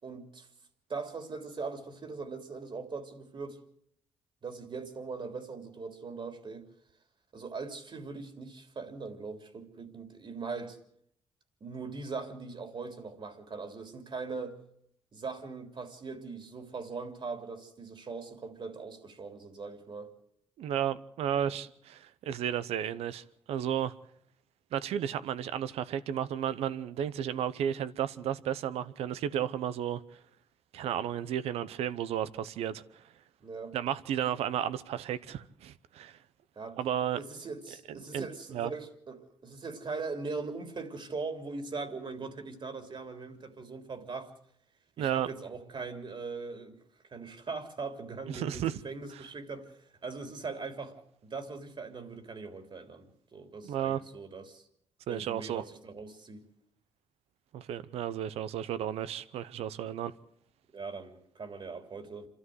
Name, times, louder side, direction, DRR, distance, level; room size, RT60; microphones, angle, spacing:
voice 1, 0.0-0.5 0.9-3.6 4.4-6.6 7.3-10.8 11.6-14.6 15.1-20.1 33.4-33.8 36.5-36.8 37.1-44.3 45.0-46.8 47.1-54.6 55.1-56.4 60.7-62.3, right 4 dB, 50° right, 3.4 m, -40 dB
voice 2, 20.6-23.9 24.7-30.0 30.7-33.0 33.7-36.2 36.8-37.2 37.9-38.3 38.5-38.7 45.0-45.3 48.3-48.7 49.1-49.2 53.6-54.0 55.1-55.6 57.5-60.1, right 10 dB, 85° right, 0.8 m, -33 dB
27.5 x 13.0 x 8.0 m
supercardioid pair, 55°, 10 cm